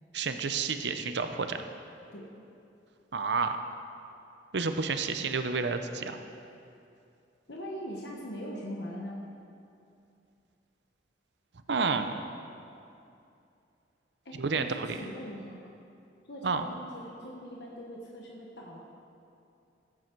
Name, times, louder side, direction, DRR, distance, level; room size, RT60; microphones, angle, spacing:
voice 1, 0.1-1.6 3.1-3.6 4.5-6.2 11.7-12.1 14.4-15.0 16.4-16.7, right 4 dB, 65° right, 8 dB, 0.7 m, -30 dB
voice 2, 7.5-9.2 14.2-15.7 16.3-18.8, equal, 65° left, -2 dB, 1.2 m, -41 dB
15.0 x 8.5 x 4.6 m, 2.6 s
head